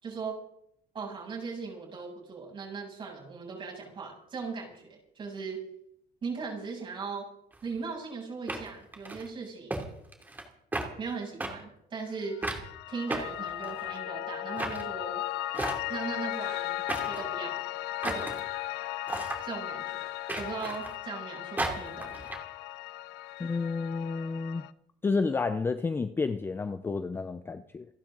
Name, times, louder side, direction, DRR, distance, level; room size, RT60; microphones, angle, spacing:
voice 1, 0.0-0.4 0.9-5.7 6.2-7.3 7.6-9.9 11.0-15.2 15.9-17.6 18.0-18.4 19.4-20.1 20.4-22.3, right 4 dB, 30° right, -2 dB, 7.6 m, -38 dB
sound 1, 7.5-7.7 8.5-9.3 9.7-9.8 10.1-10.5 10.7-10.9 11.4-11.5 12.4-12.6 13.1-14.0 14.6-14.8 15.5-16.1 16.9-17.3 18.0-18.4 19.1-19.4 20.3-21.0 21.6-22.4, right 2 dB, 10° right, 2.7 m, -34 dB
Piano, 12.3-24.7, left 15 dB, 85° left, 0.8 m, -37 dB
voice 2, 23.4-24.6 25.0-27.9, left 4 dB, 15° left, 10 dB, 0.5 m, -30 dB
28.5 x 12.0 x 3.9 m, 0.73 s
cardioid pair, 180°, 17 cm